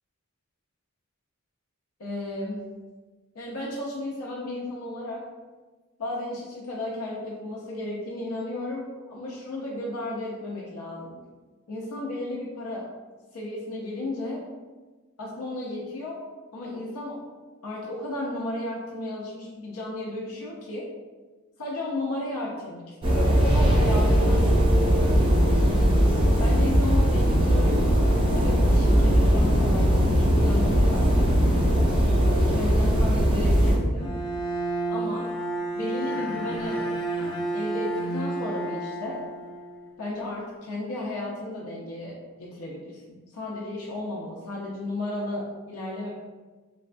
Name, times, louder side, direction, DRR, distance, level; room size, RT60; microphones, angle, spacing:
voice 1, 2.0-2.6 3.3-5.3 6.0-11.2 11.7-12.9 13.3-14.5 15.2-16.2 16.5-17.2 17.6-20.9 21.6-24.6 24.9-25.4 26.4-31.1 32.2-34.1 34.9-35.3 35.7-36.9 37.5-39.2 40.0-46.1, left 2 dB, 75° left, -4 dB, 0.5 m, -34 dB
sound 1, 23.0-33.8, equal, 25° right, 0.4 m, -20 dB
Bowed string instrument, 33.9-39.9, right 2 dB, 25° left, 0.7 m, -31 dB
3.2 x 2.2 x 2.4 m, 1.3 s
head